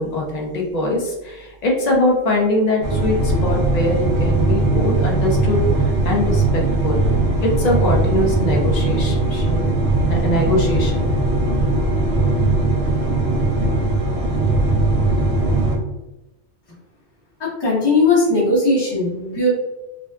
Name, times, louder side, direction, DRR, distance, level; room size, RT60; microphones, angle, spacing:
voice 1, 0.0-7.0 7.4-9.7 10.0-11.3, left 1 dB, 55° left, -1 dB, 0.4 m, -22 dB
sound 1, 2.8-15.8, right 2 dB, 90° right, 0.9 m, -19 dB
voice 2, 17.4-19.5, left 2 dB, 25° left, -6 dB, 0.8 m, -18 dB
2.5 x 2.2 x 2.3 m, 1.0 s
omnidirectional pair, 1.2 m